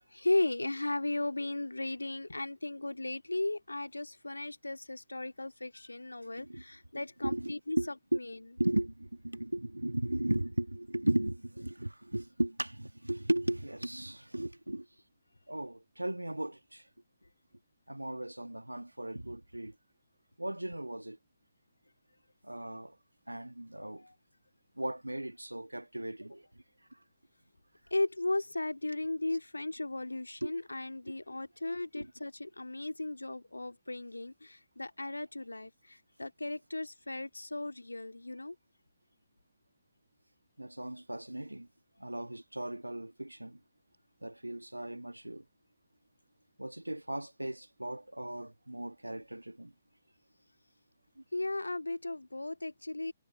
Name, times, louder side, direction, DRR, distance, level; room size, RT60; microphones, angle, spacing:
voice 1, 0.1-7.8 8.1-8.4 23.8-24.1 27.9-38.6 51.3-53.1, left 2 dB, 80° left, 2.2 m, -36 dB
voice 2, 7.2-7.9 8.6-14.8 15.5-16.8 17.9-19.7 20.4-21.2 22.4-22.9 23.3-24.0 24.8-26.4 30.4-30.5 32.0-32.1 40.6-41.7 42.0-43.6 44.2-45.4 46.6-49.7, right 1 dB, 85° right, 1.6 m, -36 dB
figure-of-eight pair, 130°, 0 cm